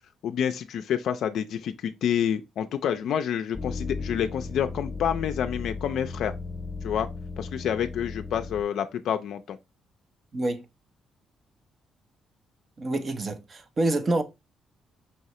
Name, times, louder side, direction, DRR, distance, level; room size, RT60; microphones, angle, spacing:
voice 1, 0.2-6.3 6.8-7.1 7.4-9.6, left 9 dB, 75° left, 0.4 m, -28 dB
sound 1, 3.5-8.6, left 4 dB, 10° left, 0.7 m, -36 dB
voice 2, 10.3-10.6 12.8-14.2, right 2 dB, 40° right, 0.7 m, -27 dB
5.5 x 2.7 x 3.0 m
cardioid pair, 90°, 0 cm